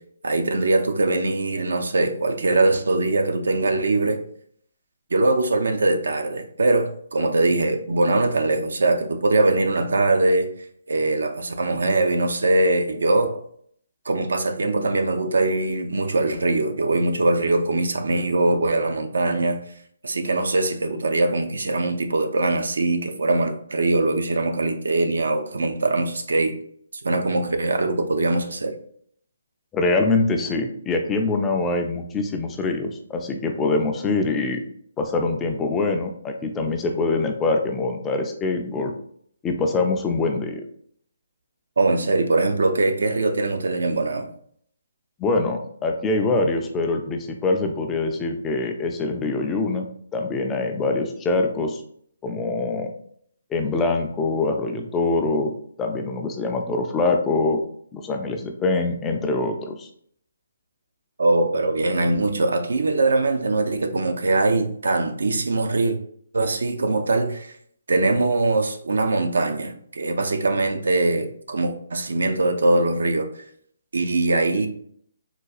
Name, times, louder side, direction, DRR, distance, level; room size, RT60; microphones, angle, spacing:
voice 1, 0.2-4.2 5.1-10.5 10.9-13.4 14.1-19.6 20.0-26.6 27.0-28.8 41.8-44.3 61.2-66.0 66.3-67.5 67.9-73.4 73.9-74.7, right 2 dB, 70° right, 6 dB, 0.5 m, -22 dB
voice 2, 29.7-34.6 35.0-38.9 39.4-40.6 45.2-49.8 50.1-51.8 52.2-52.9 53.5-55.5 55.8-57.6 57.9-59.9, left 3 dB, 15° left, 3 dB, 0.4 m, -24 dB
3.9 x 2.3 x 2.4 m, 0.63 s
figure-of-eight pair, 145°, 0 cm